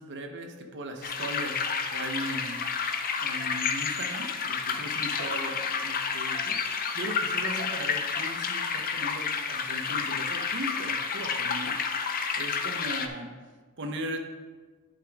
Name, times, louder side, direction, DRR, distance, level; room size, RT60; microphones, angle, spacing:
voice 1, 0.0-2.6 3.2-13.3 13.8-14.2, right 1 dB, 55° right, 4 dB, 0.9 m, -38 dB
sound 1, 1.0-13.1, left 5 dB, 40° left, 0.6 m, -30 dB
11.0 x 5.3 x 3.5 m, 1.4 s
head